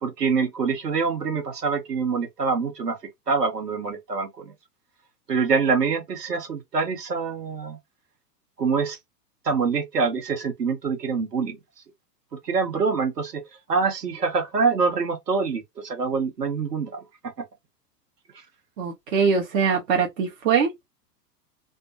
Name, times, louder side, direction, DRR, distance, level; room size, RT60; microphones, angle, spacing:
voice 1, 0.0-3.0 3.3-4.5 5.3-7.8 8.6-9.0 9.4-11.6 12.4-13.4 13.7-17.0, right 5 dB, 75° right, 1.1 m, -25 dB
voice 2, 18.8-20.9, right 6 dB, 55° right, 0.8 m, -22 dB
2.2 x 2.1 x 2.7 m
figure-of-eight pair, 100°, 49 cm